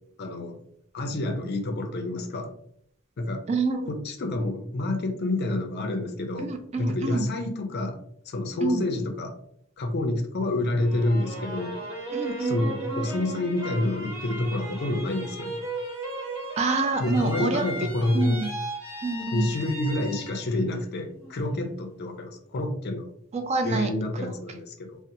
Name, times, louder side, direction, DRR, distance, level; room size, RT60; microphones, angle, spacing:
voice 1, 0.2-0.6 0.9-2.5 3.2-3.4 3.9-8.0 8.3-9.3 9.8-11.8 12.4-15.5 17.0-18.4 19.3-23.1 23.6-25.0, left 2 dB, 50° left, 5 dB, 0.4 m, -28 dB
voice 2, 3.5-3.8 6.4-7.3 8.6-8.8 12.1-12.6 16.6-17.7 18.1-18.5 19.0-19.5 23.3-23.9 24.2-24.3, right 3 dB, 30° right, 6 dB, 0.3 m, -27 dB
sound 1, 10.8-20.6 21.0-21.7, right 2 dB, 90° right, 0.9 m, -36 dB
2.8 x 2.0 x 2.5 m, 0.67 s
head